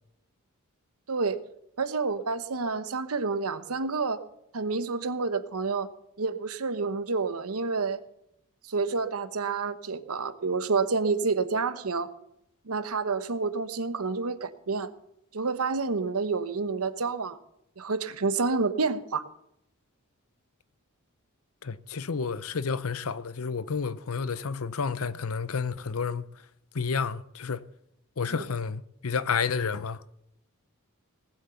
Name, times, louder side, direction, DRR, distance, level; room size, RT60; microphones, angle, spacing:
voice 1, 1.1-1.4 1.8-4.2 4.5-5.9 6.2-8.0 8.6-12.1 12.7-14.9 15.3-17.4 17.8-19.2 28.3-28.4, right 4 dB, 75° right, 1.0 m, -29 dB
voice 2, 21.6-26.3 26.7-27.6 28.2-30.0, left 5 dB, 70° left, 0.7 m, -30 dB
19.0 x 7.9 x 6.9 m
head